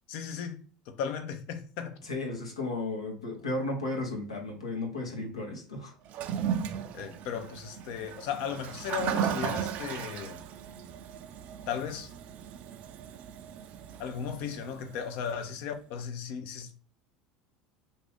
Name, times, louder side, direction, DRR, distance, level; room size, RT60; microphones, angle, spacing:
voice 1, 0.1-2.0 6.9-10.4 11.7-12.1 14.0-16.8, left 7 dB, 60° left, 0.5 m, -36 dB
voice 2, 2.0-5.9, left 2 dB, 90° left, 0.8 m, -34 dB
Toilet flush, 6.1-15.3, right 8 dB, 55° right, 0.3 m, -36 dB
2.7 x 2.6 x 3.3 m
hypercardioid pair, 75°, 3 cm